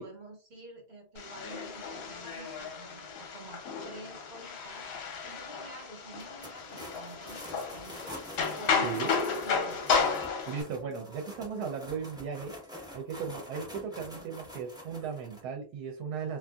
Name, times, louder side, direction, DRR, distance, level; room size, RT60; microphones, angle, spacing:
voice 1, 0.0-4.9 5.2-8.2 8.6-10.0, right 2 dB, 50° right, 1 dB, 1.2 m, -48 dB
sound 1, 1.2-10.6, left 5 dB, 75° left, 1.2 m, -33 dB
sound 2, 6.2-15.4, left 1 dB, 5° right, 0.4 m, -46 dB
voice 2, 10.5-12.5 12.9-16.4, right 6 dB, 75° right, 3 dB, 1.1 m, -36 dB
2.8 x 2.5 x 2.3 m, 0.37 s
omnidirectional pair, 1.7 m